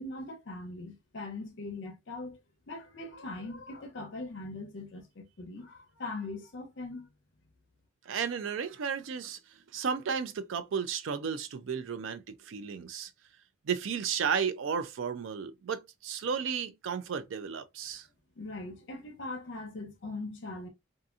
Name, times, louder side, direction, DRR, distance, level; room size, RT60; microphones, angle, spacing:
voice 1, 0.0-2.4 2.7-7.1 18.4-20.7, left 2 dB, 65° left, 0.7 m, -41 dB
voice 2, 8.1-9.4 9.7-13.1 13.7-18.1, right 6 dB, 70° right, 0.4 m, -33 dB
2.7 x 2.5 x 2.3 m
head